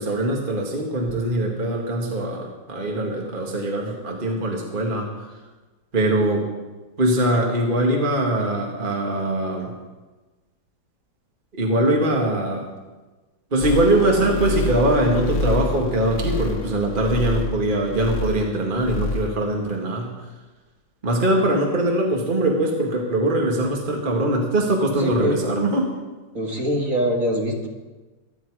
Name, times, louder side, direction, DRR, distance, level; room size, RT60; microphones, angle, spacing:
voice 1, 0.0-5.1 5.9-6.5 7.0-9.7 11.5-12.7 13.5-20.2 21.0-25.9, right 1 dB, 25° right, 0 dB, 2.0 m, -22 dB
sound 1, 13.6-18.5 18.7-19.4 19.7-19.8, left 2 dB, 75° left, 1.9 m, -27 dB
voice 2, 25.0-25.4 26.3-27.7, equal, 45° right, 0 dB, 2.4 m, -23 dB
23.5 x 10.5 x 4.9 m, 1.2 s
omnidirectional pair, 2.1 m